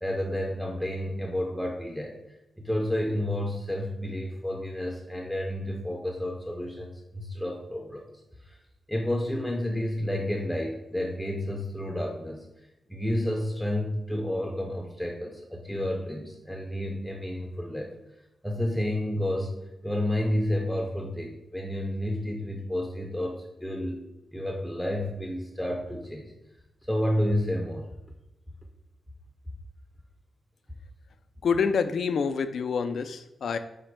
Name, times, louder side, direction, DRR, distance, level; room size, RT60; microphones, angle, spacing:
voice 1, 0.0-2.2 2.6-8.0 8.4-8.6 8.9-12.5 12.9-17.9 18.4-19.5 19.8-24.0 24.3-26.3 26.9-27.9, left 1 dB, 5° left, 1 dB, 0.5 m, -30 dB
voice 2, 31.4-33.6, left 5 dB, 75° left, 9 dB, 0.3 m, -27 dB
4.9 x 2.1 x 4.5 m, 0.92 s
cardioid pair, 90°, 0 cm